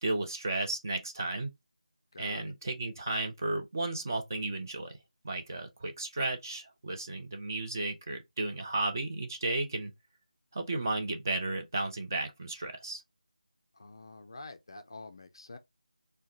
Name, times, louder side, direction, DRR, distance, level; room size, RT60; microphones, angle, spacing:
voice 1, 0.0-1.5 2.2-5.0 5.2-9.9 10.5-13.0, right 2 dB, 25° right, 0.5 m, -34 dB
voice 2, 2.1-2.5 13.7-15.6, left 2 dB, 35° left, 0.4 m, -47 dB
4.5 x 2.2 x 2.5 m
figure-of-eight pair, 165°, 4 cm